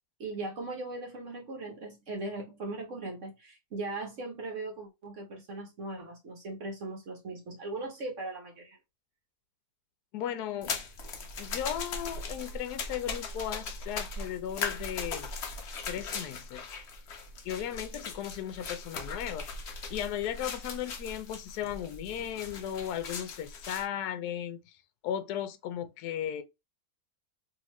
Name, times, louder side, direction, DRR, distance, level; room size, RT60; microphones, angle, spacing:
voice 1, 0.2-8.8, right 2 dB, 55° right, 1.1 m, -39 dB
voice 2, 10.1-10.7 11.4-15.3 15.9-16.8 17.4-19.5 19.9-24.8 25.0-26.4, left 10 dB, 80° left, 1.1 m, -36 dB
sound 1, 10.6-23.8, left 4 dB, 55° left, 0.8 m, -39 dB
2.8 x 2.8 x 3.0 m
omnidirectional pair, 1.7 m